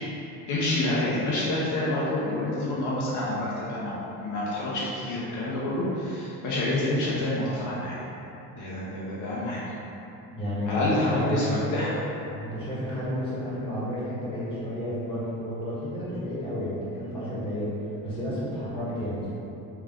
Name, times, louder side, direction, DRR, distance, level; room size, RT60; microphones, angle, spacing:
voice 1, 0.5-8.0 8.6-9.6 10.7-11.9, left 1 dB, 60° left, -7 dB, 0.8 m, -28 dB
voice 2, 10.3-11.7 12.4-19.3, equal, 15° left, -10 dB, 1.5 m, -31 dB
3.6 x 3.2 x 3.6 m, 2.9 s
cardioid pair, 135°, 33 cm